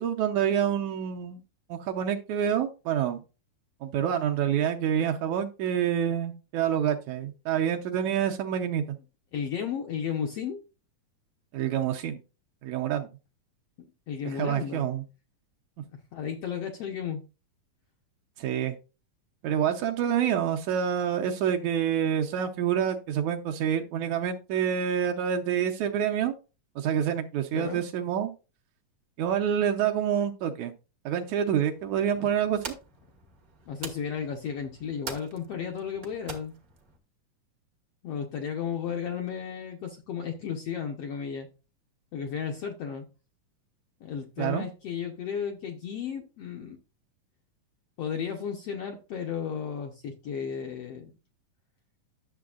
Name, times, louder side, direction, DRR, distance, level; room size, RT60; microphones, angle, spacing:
voice 1, 0.0-1.4 1.7-3.2 3.8-8.8 11.5-12.2 12.6-13.1 14.3-15.0 18.4-18.8 19.4-26.4 26.8-28.3 29.2-30.7 31.1-32.7 44.4-44.7, right 9 dB, 75° right, 4 dB, 1.9 m, -27 dB
voice 2, 9.3-10.6 14.1-14.9 16.1-17.2 27.5-27.8 32.2-32.3 33.7-36.5 38.0-41.5 42.1-43.1 44.0-46.8 48.0-51.1, left 7 dB, 70° left, 2 dB, 1.5 m, -34 dB
sound 1, 31.7-37.0, right 4 dB, 55° right, 0.9 m, -44 dB
11.5 x 6.9 x 2.4 m, 0.31 s
omnidirectional pair, 3.8 m